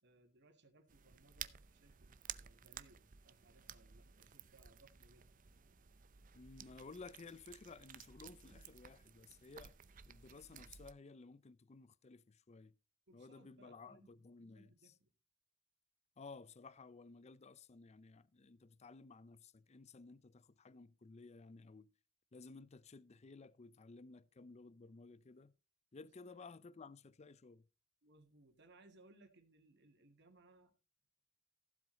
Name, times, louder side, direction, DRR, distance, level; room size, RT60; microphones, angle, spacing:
voice 1, 0.0-5.4 13.1-14.2 14.5-15.1 26.0-26.4 28.0-30.7, right 2 dB, 60° right, 2.2 m, -67 dB
sound 1, 0.9-10.9, right 9 dB, 40° right, 0.6 m, -55 dB
voice 2, 6.3-9.8 10.1-12.7 13.1-14.9 16.2-21.9 22.3-25.5 25.9-27.7, left 4 dB, 35° left, 0.5 m, -56 dB
15.0 x 7.8 x 4.0 m
head